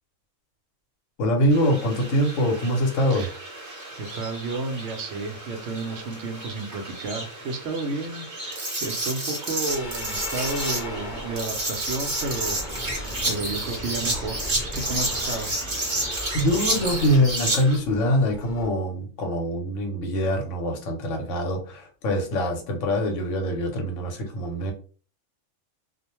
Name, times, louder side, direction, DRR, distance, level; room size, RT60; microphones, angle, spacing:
voice 1, 1.2-3.3 16.3-24.7, equal, 80° left, 2 dB, 1.1 m, -24 dB
sound 1, 1.5-17.8, right 1 dB, 40° right, 0.9 m, -31 dB
voice 2, 3.7-12.6 12.9-14.4 14.7-15.5 16.0-16.5 16.8-17.0, right 3 dB, 70° right, 5 dB, 0.8 m, -32 dB
sound 2, 9.7-18.7, left 1 dB, 45° left, 0.7 m, -38 dB
sound 3, 12.2-17.2, equal, 5° left, 0.5 m, -39 dB
2.4 x 2.1 x 2.9 m, 0.39 s
omnidirectional pair, 1.3 m